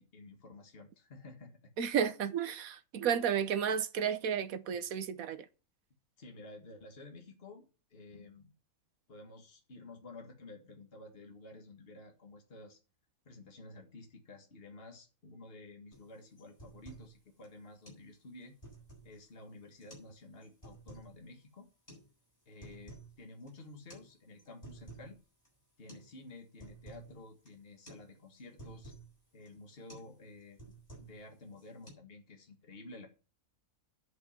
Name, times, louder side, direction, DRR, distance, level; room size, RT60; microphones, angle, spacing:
voice 1, 0.0-1.6 6.2-8.5 9.1-12.8 13.3-18.5 19.0-21.7 22.5-25.2 25.8-28.9 29.3-30.6 31.0-33.1, left 2 dB, 45° left, 1.9 m, -52 dB
voice 2, 1.8-5.4, right 8 dB, 85° right, 1.3 m, -32 dB
sound 1, 15.9-16.1 16.4-17.1 17.4-17.5 17.8-18.0 18.4-19.2 19.8-20.1 20.4-21.1 21.9-22.0 22.4-23.1 23.4-23.5 23.9-24.1 24.4-25.1 25.4-25.5 25.9-26.1 26.4-27.1 27.4-27.6 27.9-28.0 28.3-29.1 29.4-29.6 29.9-30.1 30.4-31.2 31.5-31.9, right 2 dB, 30° left, 7.6 m, -52 dB
10.5 x 5.4 x 7.3 m
omnidirectional pair, 1.4 m